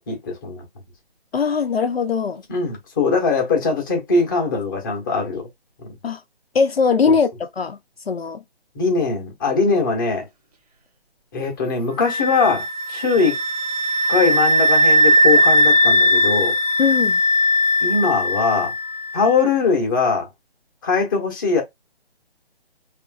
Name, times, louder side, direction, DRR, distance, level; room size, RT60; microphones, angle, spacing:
voice 1, 0.1-0.6 2.5-5.4 7.1-7.2 8.7-10.3 11.3-13.4 14.1-16.5 17.8-18.7 19.1-20.3 20.8-21.6, left 4 dB, 20° left, 0.8 m, -21 dB
voice 2, 1.3-2.4 6.0-6.2 6.5-7.8 8.1-8.4 16.8-17.2, left 5 dB, 70° left, 0.5 m, -20 dB
sound 1, 12.0-18.8, equal, 40° right, 0.6 m, -18 dB
2.9 x 2.5 x 2.3 m
figure-of-eight pair, 145°, 32 cm